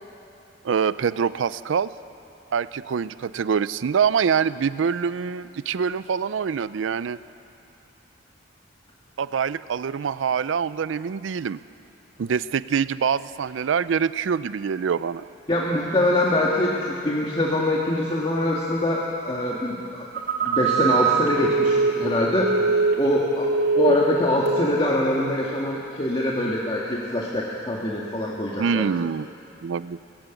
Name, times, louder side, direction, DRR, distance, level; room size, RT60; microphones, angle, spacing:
voice 1, 0.6-1.9 2.5-7.2 9.2-11.6 12.2-15.3 23.9-24.0 28.6-29.3 29.6-30.0, right 6 dB, 90° right, 16 dB, 0.4 m, -25 dB
voice 2, 15.5-20.0 20.4-22.5 23.0-28.9, left 1 dB, 30° left, -4 dB, 1.7 m, -24 dB
Telephone, 20.1-23.2 23.4-24.1 24.5-24.8, right 4 dB, 60° right, 3.1 m, -22 dB
19.0 x 15.0 x 9.1 m, 2.7 s
head